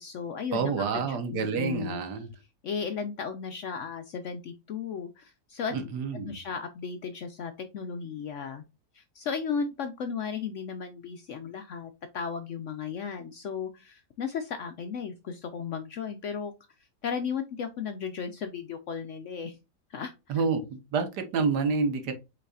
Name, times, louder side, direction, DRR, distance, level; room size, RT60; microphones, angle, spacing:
voice 1, 0.0-2.0 2.6-5.7 6.2-8.6 8.9-16.5 17.0-19.6 19.9-20.4, left 6 dB, 65° left, 7 dB, 0.7 m, -35 dB
voice 2, 0.5-2.3 5.7-6.3 20.3-22.1, right 5 dB, 80° right, 7 dB, 1.5 m, -28 dB
5.3 x 4.1 x 2.4 m, 0.26 s
omnidirectional pair, 1.8 m